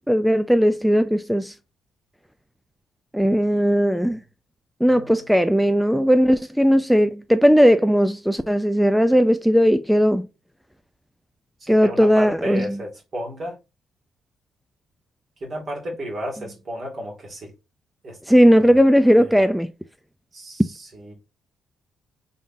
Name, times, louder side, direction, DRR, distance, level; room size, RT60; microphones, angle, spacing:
voice 1, 0.1-1.5 3.1-4.2 4.8-10.3 11.7-12.8 18.3-19.7, equal, ahead, 0.3 m, -17 dB
voice 2, 11.6-13.6 15.4-17.5 18.0-18.8 19.1-19.3 20.3-21.1, equal, 45° right, 1.9 m, -33 dB
3.8 x 3.6 x 2.5 m
cardioid pair, 90°, 0 cm